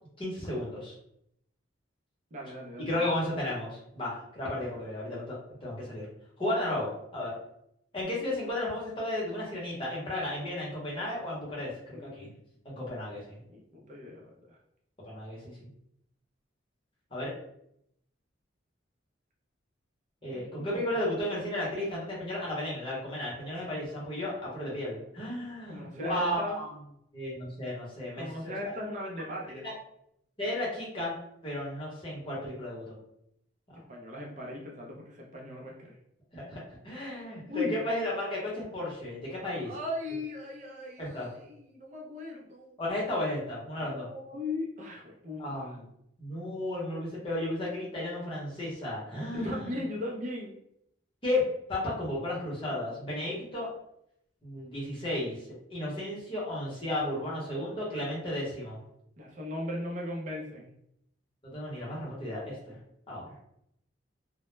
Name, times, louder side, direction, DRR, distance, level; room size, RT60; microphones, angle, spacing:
voice 1, 0.2-0.9 2.9-5.3 5.6-6.0 6.4-7.3 7.9-12.3 12.6-13.4 15.0-15.7 17.1-17.3 20.2-26.7 27.1-28.6 29.5-29.7 30.4-31.1 31.4-33.0 36.3-39.7 41.0-41.3 42.8-44.1 45.4-45.8 46.2-49.8 51.2-53.7 54.4-58.8 61.4-62.8 63.1-63.3, left 1 dB, 25° left, -6 dB, 0.8 m, -34 dB
voice 2, 2.3-3.1 11.9-12.3 13.5-14.6 20.2-20.9 25.7-26.6 28.2-29.7 33.9-36.0 37.5-37.8 39.6-42.8 43.9-45.7 49.3-50.6 59.2-60.7, left 1 dB, 40° right, -1 dB, 0.4 m, -38 dB
2.0 x 2.0 x 3.1 m, 0.75 s
head